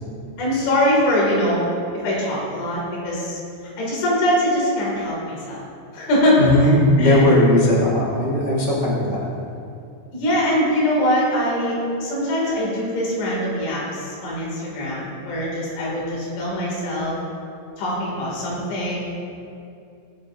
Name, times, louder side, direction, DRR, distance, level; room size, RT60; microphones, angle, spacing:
voice 1, 0.4-1.6 2.0-3.4 3.8-5.6 5.9-6.7 7.0-7.2 10.1-17.2 17.8-19.2, left 1 dB, 75° left, -5 dB, 5.1 m, -22 dB
voice 2, 6.4-9.3, left 1 dB, 80° right, -5 dB, 0.6 m, -17 dB
20.0 x 9.6 x 2.8 m, 2.5 s
omnidirectional pair, 5.3 m